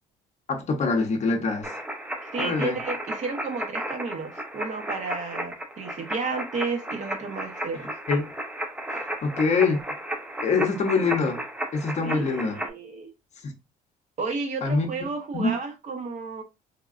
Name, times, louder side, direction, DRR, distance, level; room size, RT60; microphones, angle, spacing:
voice 1, 0.5-1.7 2.4-2.8 8.1-8.3 8.9-9.8 10.4-11.4 11.7-12.6 13.4-13.5 14.6-14.9 15.3-15.6, left 4 dB, 40° left, 0.7 m, -24 dB
sound 1, 1.6-12.7, right 1 dB, 5° right, 0.5 m, -34 dB
voice 2, 2.2-7.9 12.0-13.1 14.2-16.4, right 4 dB, 45° right, 0.9 m, -32 dB
3.5 x 2.2 x 2.4 m
cardioid pair, 110°, 17 cm